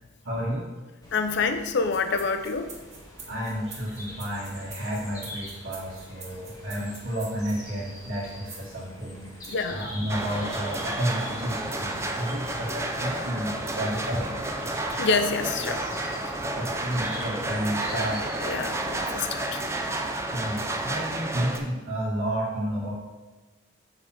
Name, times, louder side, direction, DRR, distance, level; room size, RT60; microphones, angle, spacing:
voice 1, 0.2-0.7 3.3-14.4 16.5-18.2 20.0-20.1 20.3-23.1, right 1 dB, 75° right, -10 dB, 1.8 m, -31 dB
sound 1, 1.0-19.2, left 1 dB, 15° left, 1.2 m, -45 dB
voice 2, 1.1-2.7 9.5-9.9 15.0-15.8 16.3-16.4 17.9-19.6, left 4 dB, 55° left, 8 dB, 0.5 m, -27 dB
sound 2, 1.8-7.6 8.5-8.8 9.4-9.7 10.3-10.4, right 4 dB, 35° right, 1.1 m, -46 dB
sound 3, 10.1-21.6, right 1 dB, 15° right, 0.5 m, -31 dB
5.6 x 4.1 x 6.0 m, 1.2 s
head